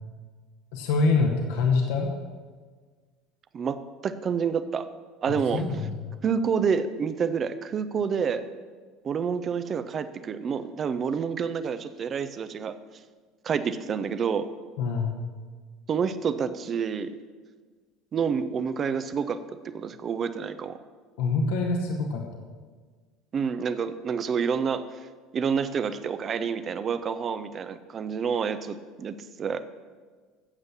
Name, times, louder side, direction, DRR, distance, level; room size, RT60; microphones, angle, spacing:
voice 1, 0.7-2.1 5.3-5.9 14.8-15.1 21.2-22.2, left 4 dB, 65° left, 1 dB, 1.6 m, -25 dB
voice 2, 3.5-4.9 5.2-5.6 6.2-8.5 9.0-12.7 13.4-14.5 15.9-17.1 18.1-20.8 23.3-24.8 25.3-29.6, right 6 dB, 35° right, 12 dB, 0.8 m, -28 dB
15.0 x 8.1 x 5.8 m, 1.5 s
figure-of-eight pair, 65°, 0 cm